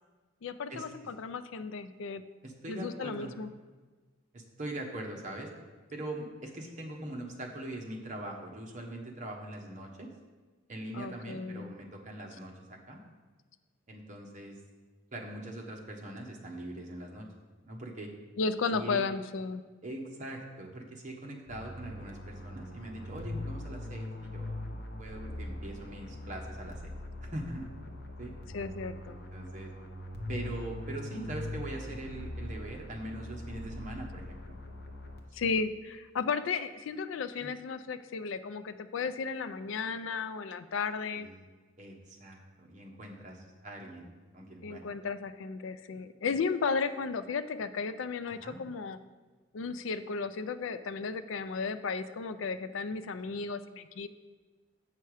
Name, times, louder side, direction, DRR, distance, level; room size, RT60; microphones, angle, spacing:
voice 1, 0.4-2.2 2.7-3.5 10.9-11.7 18.4-19.6 28.5-29.2 35.3-41.3 44.6-49.0 49.5-54.1, left 5 dB, 75° left, 12 dB, 0.4 m, -34 dB
voice 2, 2.4-3.3 4.3-5.5 5.9-10.1 10.7-13.0 13.9-14.6 15.1-17.3 17.6-18.1 18.7-19.1 19.8-26.8 27.2-27.7 28.2-28.3 29.1-29.7 30.3-34.6 35.4-35.5 37.4-37.5 41.2-41.4 41.8-44.1 44.3-44.8 48.3-48.6, right 1 dB, 40° right, 1 dB, 1.1 m, -42 dB
sound 1, 21.5-35.6, left 1 dB, 55° left, 0.9 m, -42 dB
8.2 x 5.6 x 4.8 m, 1.3 s
head